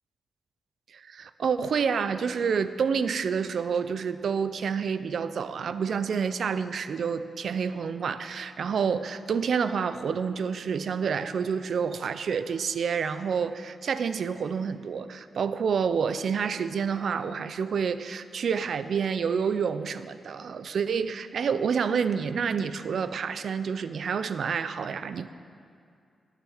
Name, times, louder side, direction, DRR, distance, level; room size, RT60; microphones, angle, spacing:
voice 1, 0.9-25.3, right 6 dB, 65° right, 13 dB, 0.4 m, -28 dB
9.9 x 9.2 x 6.4 m, 2.4 s
wide cardioid pair, 125°, 0 cm